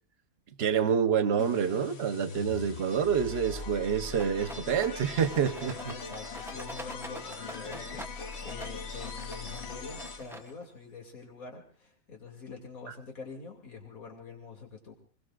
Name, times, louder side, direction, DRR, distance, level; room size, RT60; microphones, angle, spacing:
voice 1, 0.6-5.9, right 7 dB, 50° right, 10 dB, 1.1 m, -27 dB
sound 1, 1.4-10.5, left 4 dB, 50° left, 1.2 m, -41 dB
Rattle, 4.1-10.8, right 1 dB, 5° right, 0.6 m, -46 dB
voice 2, 5.6-14.9, left 4 dB, 75° left, 1 dB, 3.0 m, -45 dB
27.5 x 21.0 x 2.5 m, 0.41 s
omnidirectional pair, 1.5 m